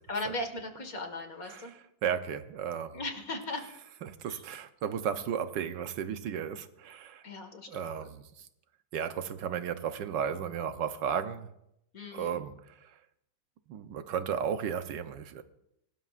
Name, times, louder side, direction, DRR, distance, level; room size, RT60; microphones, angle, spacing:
voice 1, 0.1-1.7 2.9-3.6 4.3-4.4 7.2-8.1 11.9-12.4, left 2 dB, 55° left, 2.2 m, -38 dB
voice 2, 1.4-3.0 4.0-7.2 7.7-8.5 8.9-11.5 12.1-12.9 13.7-15.4, right 8 dB, 85° right, 1.5 m, -34 dB
24.5 x 18.5 x 2.5 m
omnidirectional pair, 1.9 m